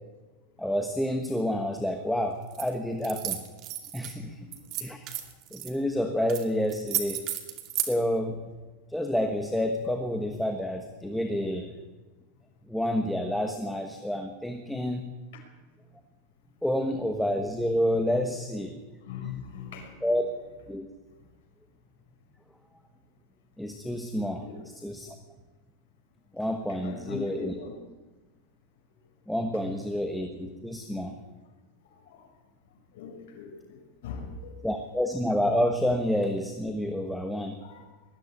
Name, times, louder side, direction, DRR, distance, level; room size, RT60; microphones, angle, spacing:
voice 1, 0.6-3.4 3.9-4.4 4.8-5.1 5.5-7.2 7.9-8.4 8.9-11.7 12.7-15.1 16.6-18.8 20.0-20.3 20.7-20.9 23.6-24.5 24.8-25.1 26.3-27.5 29.3-31.1 34.6-37.6, equal, ahead, 4 dB, 1.2 m, -29 dB
sound 1, 2.5-2.7 3.0-4.1 4.5-5.7 6.3-6.4 6.7-7.9, right 12 dB, 35° right, 2.5 m, -33 dB
voice 2, 19.0-19.9 24.4-24.6 26.7-27.8 31.0-31.1 32.1-32.3 32.9-34.5 37.6-37.9, left 6 dB, 75° left, 3 dB, 5.5 m, -40 dB
20.0 x 14.0 x 9.7 m, 1.2 s
supercardioid pair, 165°, 0 cm